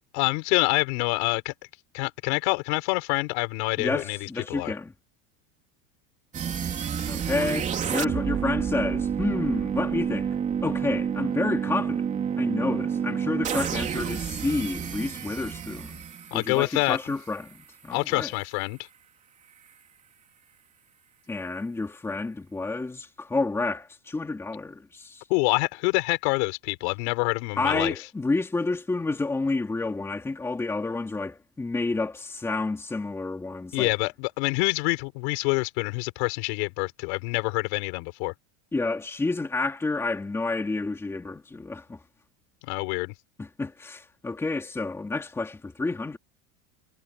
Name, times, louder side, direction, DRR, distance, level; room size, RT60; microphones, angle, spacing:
voice 1, 0.1-1.5 1.9-4.7 16.3-17.0 17.9-18.9 25.3-27.9 33.7-38.3 42.6-43.1, left 30 dB, 50° left, 6.1 m, -26 dB
voice 2, 3.8-4.9 7.1-10.4 10.6-12.1 12.4-16.0 16.3-18.3 21.3-25.3 27.6-33.9 38.7-42.0 43.4-46.2, left 3 dB, 5° left, 2.8 m, -30 dB
sound 1, 6.3-17.3, right 7 dB, 15° right, 3.5 m, -29 dB
supercardioid pair, 180°, 41 cm